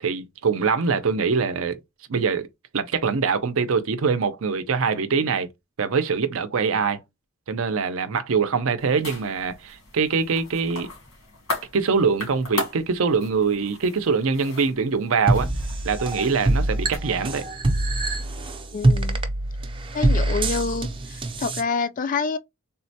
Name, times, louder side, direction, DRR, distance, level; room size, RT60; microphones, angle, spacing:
voice 1, 0.0-1.8 2.1-2.5 2.7-5.5 5.8-7.0 7.5-10.9 11.7-15.5 15.8-17.5, right 5 dB, 75° right, 0.6 m, -23 dB
sound 1, 8.8-17.0, left 2 dB, 85° left, 1.7 m, -37 dB
sound 2, 15.3-21.6, right 2 dB, 25° right, 0.5 m, -24 dB
voice 2, 18.7-19.2 19.9-22.4, left 4 dB, 40° left, 0.3 m, -27 dB
3.6 x 2.1 x 2.7 m
head